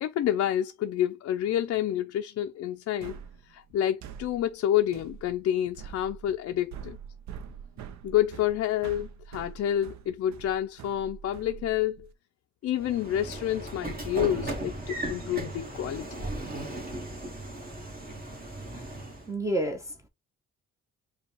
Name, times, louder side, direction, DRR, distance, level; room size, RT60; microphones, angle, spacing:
voice 1, 0.0-3.2 3.5-7.0 8.0-12.1 12.6-16.1, left 11 dB, 55° left, 0.4 m, -28 dB
sound 1, 3.0-12.1, right 8 dB, 65° right, 0.6 m, -45 dB
Train / Sliding door, 12.7-19.3, right 1 dB, 30° right, 1.5 m, -37 dB
voice 2, 19.3-20.1, right 1 dB, 10° right, 0.7 m, -30 dB
5.1 x 2.3 x 3.0 m
cardioid pair, 90°, 30 cm